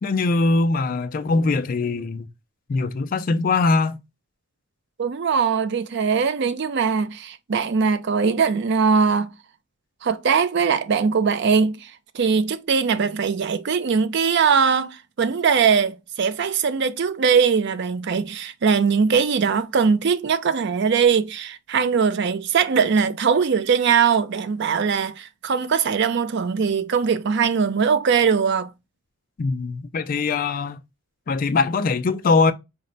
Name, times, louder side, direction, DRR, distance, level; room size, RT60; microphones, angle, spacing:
voice 1, 0.0-2.3 2.7-4.0 29.4-30.8 31.3-32.5, left 3 dB, 40° left, 0.3 m, -21 dB
voice 2, 5.0-9.3 10.0-28.7, right 6 dB, 50° right, 0.4 m, -21 dB
4.3 x 2.1 x 3.8 m
head